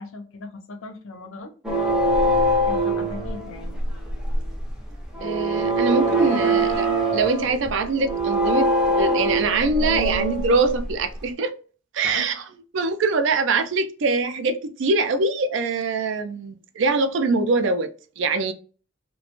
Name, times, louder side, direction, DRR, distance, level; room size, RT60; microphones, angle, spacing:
voice 1, 0.0-1.5 2.7-3.8 6.0-6.8 12.0-12.4, left 3 dB, 75° left, 0.5 m, -38 dB
sound 1, 1.6-11.2, right 1 dB, 5° right, 0.4 m, -23 dB
voice 2, 5.2-6.8 7.1-11.5 11.9-12.4 12.7-18.5, right 3 dB, 65° right, 0.4 m, -23 dB
2.4 x 2.2 x 2.8 m
head